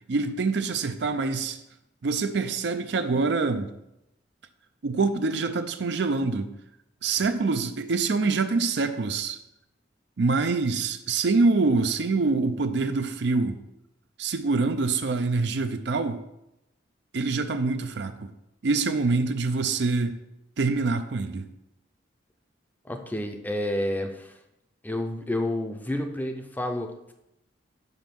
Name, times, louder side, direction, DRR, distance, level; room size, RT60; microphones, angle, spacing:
voice 1, 0.1-1.6 2.0-3.7 4.8-6.5 7.0-9.4 10.2-13.6 14.2-16.2 17.1-18.3 18.6-20.2 20.6-21.5, right 3 dB, 65° right, 0.5 m, -25 dB
voice 2, 22.8-24.4 24.8-27.1, left 1 dB, 10° left, 0.6 m, -30 dB
5.4 x 5.2 x 5.9 m
head